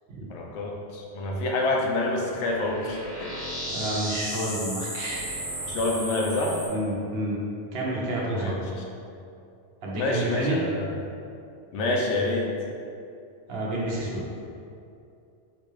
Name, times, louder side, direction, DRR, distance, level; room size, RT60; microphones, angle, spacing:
voice 1, 0.3-3.3 5.7-6.6 8.3-8.6 9.9-10.9 11.7-12.5, left 2 dB, 85° left, -1 dB, 0.9 m, -27 dB
sound 1, 2.4-6.7, equal, 15° left, 0.7 m, -34 dB
voice 2, 3.7-5.2 6.7-7.4 7.7-8.5 9.8-10.6 13.5-14.2, right 1 dB, 65° right, -4 dB, 0.9 m, -29 dB
3.8 x 2.4 x 3.1 m, 2.6 s
omnidirectional pair, 1.1 m